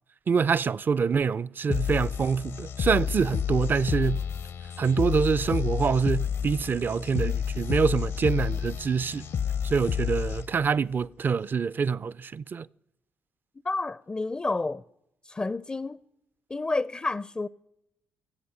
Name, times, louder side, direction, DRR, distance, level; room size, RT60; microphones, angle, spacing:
voice 1, 0.3-4.2 4.8-9.2 9.6-12.7, right 5 dB, 40° right, 0.4 m, -25 dB
sound 1, 1.7-10.7, left 8 dB, 65° left, 0.6 m, -30 dB
voice 2, 13.6-14.8 15.2-16.0 16.5-17.5, left 3 dB, 20° left, 0.4 m, -30 dB
18.0 x 7.9 x 6.6 m
hypercardioid pair, 50°, 5 cm